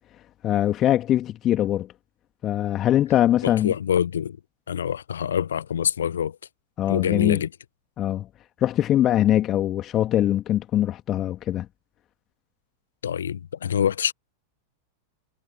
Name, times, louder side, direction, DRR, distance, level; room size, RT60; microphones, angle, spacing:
voice 1, 0.4-1.9 2.4-3.7 6.8-7.4 8.0-8.3 8.6-11.7, left 12 dB, 30° left, 2.7 m, -22 dB
voice 2, 3.4-4.4 4.7-6.4 6.9-7.5 13.0-14.1, left 8 dB, 65° left, 1.4 m, -25 dB
figure-of-eight pair, 90°, 0 cm